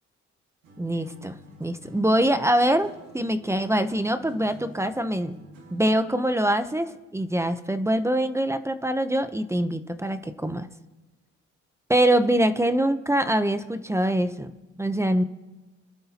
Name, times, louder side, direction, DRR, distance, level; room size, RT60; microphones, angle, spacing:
sound 1, 0.6-6.0, right 1 dB, 90° right, 5.1 m, -49 dB
voice 1, 0.8-5.3 5.7-10.7 11.9-14.5 14.8-15.2, right 1 dB, 10° right, 10 dB, 0.7 m, -24 dB
26.5 x 12.0 x 2.9 m, 1.1 s
cardioid pair, 90°, 30 cm